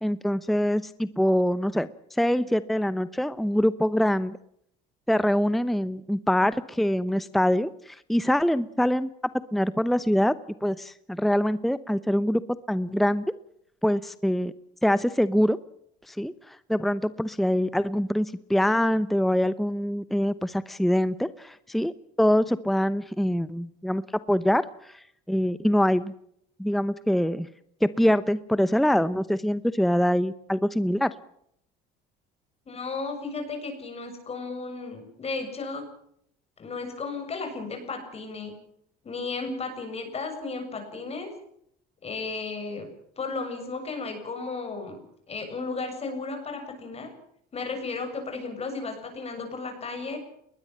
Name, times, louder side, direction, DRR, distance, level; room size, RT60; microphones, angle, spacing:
voice 1, 0.0-4.4 5.1-9.1 9.5-10.4 10.6-13.3 13.8-14.5 14.8-15.6 16.1-26.1 26.6-27.5 27.8-31.1, equal, ahead, 15 dB, 0.8 m, -24 dB
voice 2, 32.7-35.9 36.6-38.5 39.0-41.3 42.0-42.9 43.2-45.0 45.3-47.1 47.5-50.2, left 4 dB, 30° left, 6 dB, 7.5 m, -34 dB
22.0 x 20.5 x 7.6 m, 0.71 s
supercardioid pair, 105°, 20 cm